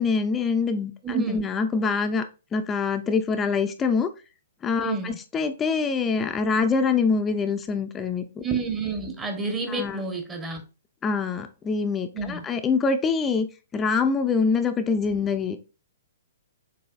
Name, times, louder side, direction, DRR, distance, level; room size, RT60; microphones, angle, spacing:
voice 1, 0.0-2.2 2.5-4.1 4.6-8.4 9.7-10.0 11.0-13.5 13.7-15.6, left 5 dB, 15° left, 0.5 m, -25 dB
voice 2, 1.0-1.4 4.8-5.2 8.4-10.6 12.1-12.4, right 4 dB, 15° right, 1.0 m, -29 dB
7.0 x 2.7 x 2.3 m
figure-of-eight pair, 120°, 0 cm